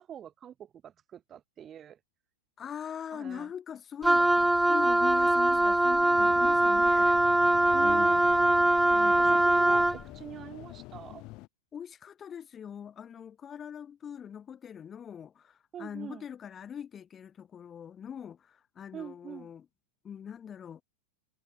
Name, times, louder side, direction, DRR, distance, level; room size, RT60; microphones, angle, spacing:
voice 1, 0.0-2.0 3.1-3.5 5.5-5.7 7.7-8.6 9.2-11.3 15.7-16.3 18.9-19.5, right 9 dB, 25° right, 4.5 m, -44 dB
voice 2, 2.6-7.2 7.8-8.5 8.8-9.3 11.7-19.6 20.0-20.8, left 8 dB, 25° left, 2.2 m, -42 dB
Wind instrument woodwind instrument, 4.0-10.0, right 1 dB, 5° right, 0.6 m, -23 dB
sound 1, 6.1-11.5, left 22 dB, 40° left, 7.2 m, -47 dB
figure-of-eight pair, 90°, 0 cm